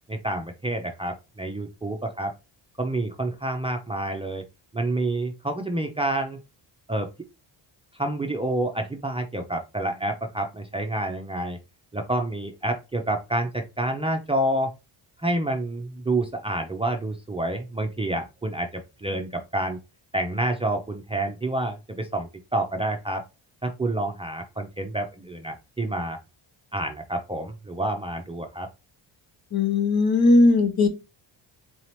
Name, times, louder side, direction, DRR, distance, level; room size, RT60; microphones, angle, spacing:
voice 1, 0.1-2.3 2.8-4.4 4.7-6.4 6.9-7.1 7.9-11.6 11.9-14.7 15.2-19.8 20.1-23.2 23.6-26.2 26.7-28.7, right 1 dB, 10° right, 4 dB, 0.6 m, -28 dB
voice 2, 29.5-30.9, left 2 dB, 45° left, 6 dB, 1.2 m, -18 dB
4.1 x 2.8 x 3.2 m, 0.27 s
cardioid pair, 85°, 48 cm